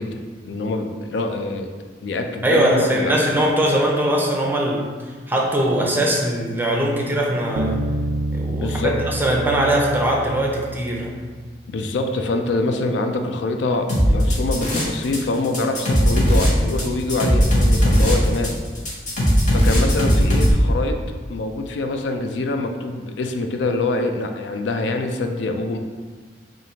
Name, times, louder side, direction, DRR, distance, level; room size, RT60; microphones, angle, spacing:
voice 1, 0.0-1.7 2.0-3.1 8.6-8.9 11.7-18.5 19.5-21.0 21.3-25.8, left 2 dB, 85° left, 5 dB, 0.4 m, -25 dB
voice 2, 2.4-4.9 5.3-7.8 8.3-11.1, right 1 dB, 10° right, -1 dB, 0.5 m, -21 dB
Bass guitar, 7.5-11.2, right 2 dB, 80° right, 0.4 m, -28 dB
sound 1, 13.9-15.2 15.4-20.5, equal, 45° left, 1.0 m, -17 dB
4.9 x 2.6 x 2.8 m, 1.5 s
head